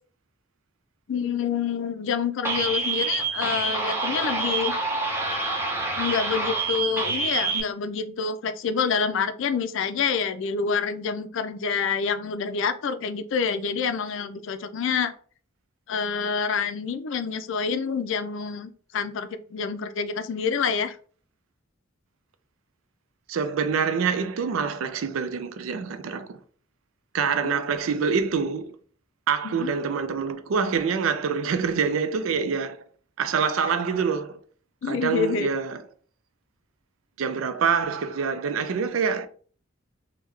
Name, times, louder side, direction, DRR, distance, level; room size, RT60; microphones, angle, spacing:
voice 1, 1.1-4.7 6.0-15.1 15.9-21.0 27.4-27.6 29.4-29.7 34.8-35.5, left 6 dB, 65° left, 0.4 m, -27 dB
sound 1, 2.4-7.6, right 3 dB, 10° right, 0.7 m, -27 dB
voice 2, 23.3-26.4 27.1-28.8 29.3-32.8 33.2-34.4 34.9-35.8 37.2-39.3, right 6 dB, 85° right, 0.4 m, -26 dB
3.5 x 2.2 x 3.2 m
head